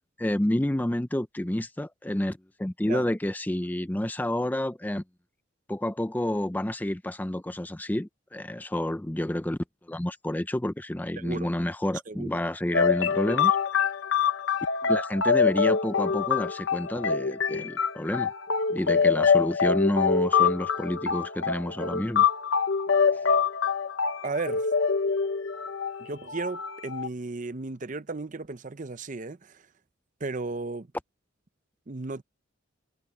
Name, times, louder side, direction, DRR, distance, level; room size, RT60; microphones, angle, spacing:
voice 1, 0.2-5.0 5.7-9.6 9.9-13.6 14.8-18.3 18.7-22.2, left 1 dB, 10° left, 0.5 m, -29 dB
voice 2, 11.2-11.5 12.1-12.3 24.2-24.7 26.0-29.6 30.2-30.9 31.9-32.2, right 3 dB, 40° right, 0.6 m, -34 dB
sound 1, 12.7-27.1, left 6 dB, 65° left, 0.9 m, -25 dB
head